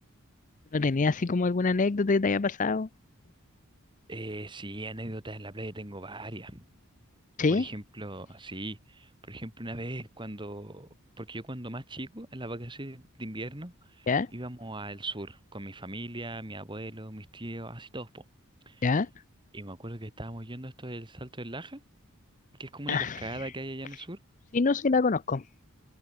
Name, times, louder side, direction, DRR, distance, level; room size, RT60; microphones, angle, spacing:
voice 1, 0.7-2.9 7.4-7.7 14.1-14.3 18.8-19.1 22.9-23.2 24.5-25.4, left 4 dB, 35° left, 0.5 m, -25 dB
voice 2, 4.1-6.6 7.5-10.9 11.2-18.2 18.7-18.8 19.5-21.8 22.6-24.2, right 1 dB, 20° right, 3.1 m, -39 dB
head